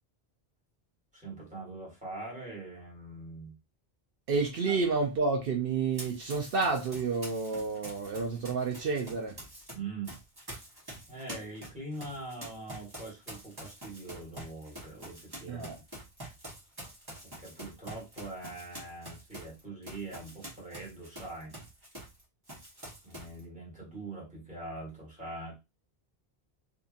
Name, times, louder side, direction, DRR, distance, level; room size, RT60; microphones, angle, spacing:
voice 1, 1.1-3.6 4.7-4.8 9.7-10.1 11.1-15.7 17.2-21.5 23.0-25.6, right 2 dB, 5° right, 1.4 m, -43 dB
voice 2, 4.3-9.4 15.5-15.8, right 4 dB, 65° right, 0.8 m, -30 dB
Run, 5.9-9.7 10.0-22.2 22.5-23.4, right 1 dB, 25° right, 1.1 m, -46 dB
2.7 x 2.5 x 2.5 m
omnidirectional pair, 1.0 m